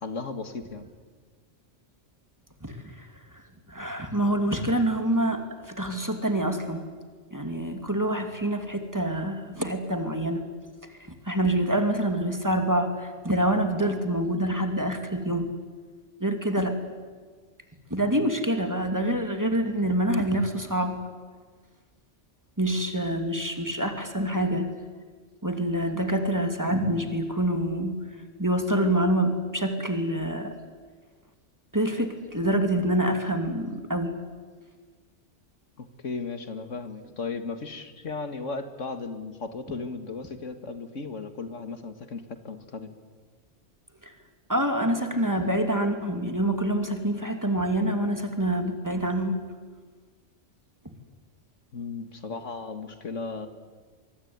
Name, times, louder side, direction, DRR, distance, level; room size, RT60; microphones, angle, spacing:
voice 1, 0.0-0.9 18.1-18.3 35.8-42.9 51.7-53.5, left 4 dB, 80° left, 9 dB, 2.2 m, -36 dB
voice 2, 2.6-3.0 3.7-6.9 7.3-10.4 11.3-15.5 16.2-16.7 17.9-21.0 22.6-24.7 25.4-28.0 28.4-30.5 31.7-34.1 44.5-49.4, right 1 dB, 15° right, 6 dB, 2.7 m, -26 dB
24.5 x 23.5 x 9.5 m, 1.5 s
omnidirectional pair, 1.3 m